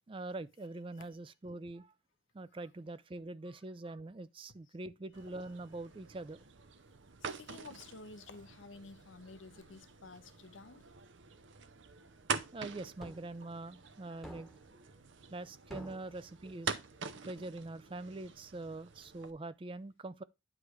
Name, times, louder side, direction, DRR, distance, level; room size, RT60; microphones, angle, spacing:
voice 1, 0.1-1.9 2.3-6.4 12.5-14.9 15.3-16.7 17.2-20.2, right 2 dB, 25° right, 0.4 m, -44 dB
sound 1, 5.1-19.3, right 5 dB, 75° right, 0.7 m, -45 dB
voice 2, 7.4-10.8 12.0-12.1 13.6-13.8 14.0-14.1 15.3-15.4 18.7-18.8, left 3 dB, 85° left, 0.8 m, -52 dB
sound 2, 13.0-13.3 14.2-14.7 15.7-16.2, equal, ahead, 1.0 m, -49 dB
9.7 x 3.3 x 4.8 m
head